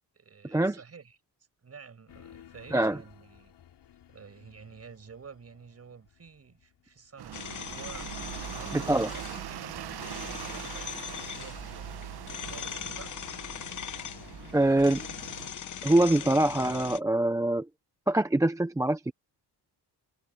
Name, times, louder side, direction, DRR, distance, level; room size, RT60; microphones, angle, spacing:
voice 1, 0.1-1.2 1.6-3.5 4.1-13.2, right 6 dB, 35° right, 6.4 m, -50 dB
sound 1, 2.1-7.5, left 10 dB, 85° left, 5.4 m, -57 dB
sound 2, 7.2-15.5, right 11 dB, 70° right, 1.0 m, -41 dB
sound 3, 7.3-17.0, left 8 dB, 45° left, 1.0 m, -40 dB
voice 2, 8.7-9.1 14.5-15.1 15.8-17.7 18.1-19.1, right 1 dB, 10° right, 0.5 m, -24 dB
wide cardioid pair, 170°, 40 cm